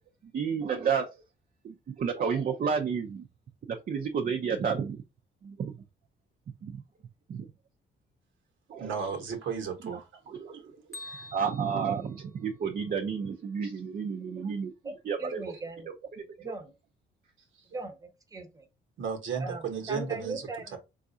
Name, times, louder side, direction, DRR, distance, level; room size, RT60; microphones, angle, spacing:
voice 1, 0.2-1.1 1.6-3.3 3.7-5.0 5.4-5.8 6.6-6.8 7.3-7.5 8.7-9.0 10.3-10.7 11.3-14.7 15.0-15.5 15.9-16.5, right 6 dB, 45° right, 0.6 m, -31 dB
voice 2, 8.8-10.1 11.0-11.3 19.0-20.8, right 6 dB, 75° right, 1.1 m, -34 dB
Bell, 10.9-13.0, left 1 dB, 15° left, 1.1 m, -47 dB
voice 3, 15.2-15.9 16.4-16.7 17.7-18.7 19.4-19.6 19.9-20.8, right 3 dB, 15° right, 0.9 m, -39 dB
3.9 x 2.4 x 2.7 m
cardioid pair, 90°, 20 cm